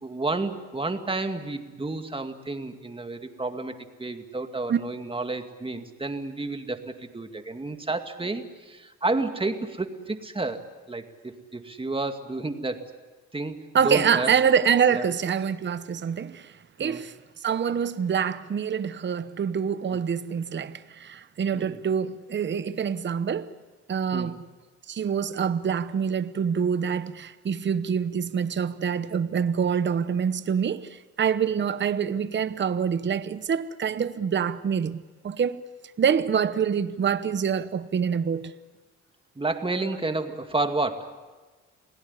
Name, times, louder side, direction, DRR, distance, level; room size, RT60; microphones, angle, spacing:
voice 1, 0.0-12.9 13.3-14.3 14.9-15.0 16.8-17.0 21.5-21.8 24.1-24.4 39.4-41.2, right 3 dB, 15° right, 2.3 m, -31 dB
voice 2, 13.7-16.5 16.8-17.1 17.4-23.5 23.9-24.4 24.9-35.6 36.0-38.5, right 7 dB, 35° right, 0.9 m, -26 dB
28.0 x 17.5 x 9.9 m
cardioid pair, 90°, 30 cm